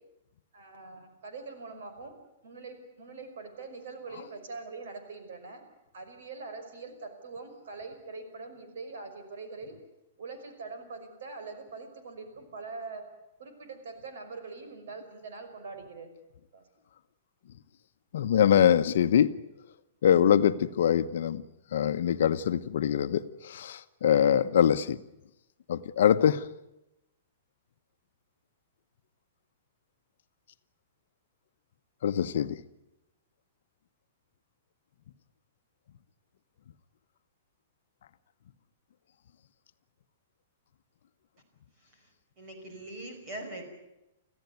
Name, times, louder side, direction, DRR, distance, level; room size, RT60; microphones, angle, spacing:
voice 1, 0.5-2.1 2.4-5.6 5.9-9.8 10.2-13.0 13.4-16.1 16.5-16.6, right 4 dB, 70° right, 7 dB, 5.7 m, -43 dB
voice 2, 18.1-19.3 20.0-21.4 21.7-25.0 25.7-26.4 32.0-32.6, left 9 dB, 60° left, 10 dB, 1.0 m, -23 dB
voice 3, 41.8-42.1 42.4-43.6, right 1 dB, 25° right, 3 dB, 5.4 m, -42 dB
25.0 x 15.5 x 9.5 m, 0.91 s
hypercardioid pair, 175°, 0 cm